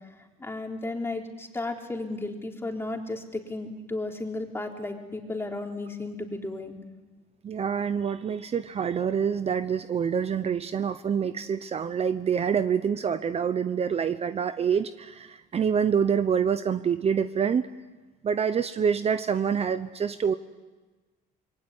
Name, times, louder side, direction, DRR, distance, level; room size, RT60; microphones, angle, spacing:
voice 1, 0.4-6.8, left 2 dB, 15° left, 2 dB, 3.9 m, -34 dB
voice 2, 7.4-17.7 18.2-20.3, right 7 dB, 35° right, 11 dB, 0.9 m, -26 dB
26.0 x 22.5 x 9.7 m, 1.3 s
cardioid pair, 110°, 17 cm